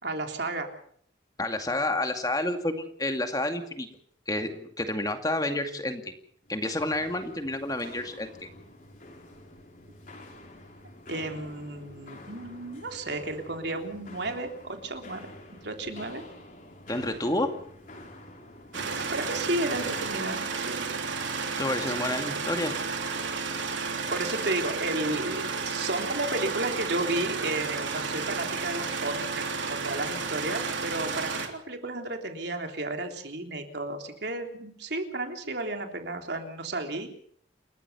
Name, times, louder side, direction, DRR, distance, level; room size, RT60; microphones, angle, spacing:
voice 1, 0.0-0.7 11.1-15.3 15.6-16.2 19.1-20.8 21.8-22.1 24.1-29.4 29.7-37.1, right 2 dB, 65° right, 4 dB, 3.5 m, -33 dB
voice 2, 1.4-3.9 4.3-6.1 6.5-8.5 16.9-17.5 21.6-22.8, left 1 dB, 20° left, 6 dB, 2.3 m, -29 dB
Walk footsteps, 6.4-20.3, left 1 dB, 45° left, 4.5 m, -47 dB
sound 1, 18.7-31.5, right 4 dB, 80° right, 3.4 m, -32 dB
29.5 x 14.0 x 7.0 m, 0.62 s
head